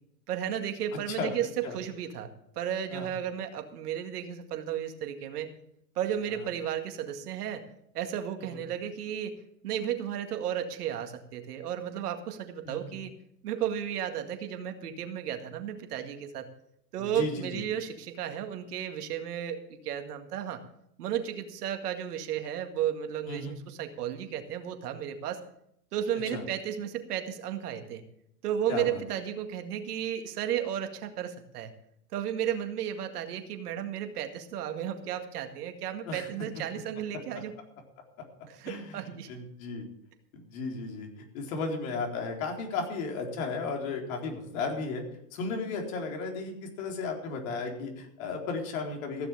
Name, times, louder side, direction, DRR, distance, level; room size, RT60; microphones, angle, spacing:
voice 1, 0.3-5.5 6.0-7.7 7.9-9.4 9.6-13.1 13.4-16.5 16.9-20.6 21.0-25.4 25.9-28.0 28.4-31.7 32.1-37.5 38.5-39.3, right 9 dB, 70° right, 6 dB, 2.1 m, -33 dB
voice 2, 0.9-1.3 1.6-1.7 2.9-3.1 8.4-8.6 12.7-12.9 17.0-17.6 23.3-23.5 26.3-26.4 28.7-29.0 36.1-36.3 38.7-39.9 40.3-45.0 45.3-49.3, left 4 dB, 55° left, 2 dB, 4.1 m, -35 dB
15.0 x 7.1 x 7.5 m, 0.73 s
hypercardioid pair, 135°, 48 cm